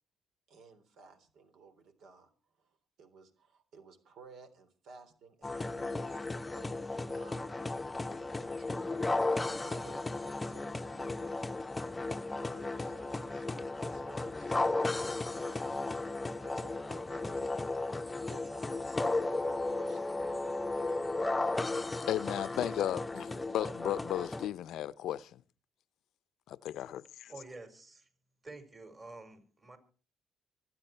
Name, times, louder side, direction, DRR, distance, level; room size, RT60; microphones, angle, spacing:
voice 1, 0.5-7.5 8.1-11.2 12.3-15.7 16.4-18.0 18.3-20.2, right 4 dB, 70° right, 3.5 m, -57 dB
sound 1, 5.4-24.5, left 2 dB, 15° left, 0.8 m, -35 dB
voice 2, 22.1-25.4 26.5-27.3, left 12 dB, 75° left, 0.6 m, -35 dB
voice 3, 27.3-28.1 28.4-29.8, right 2 dB, 30° right, 4.8 m, -49 dB
24.5 x 9.5 x 4.5 m
cardioid pair, 95°, 0 cm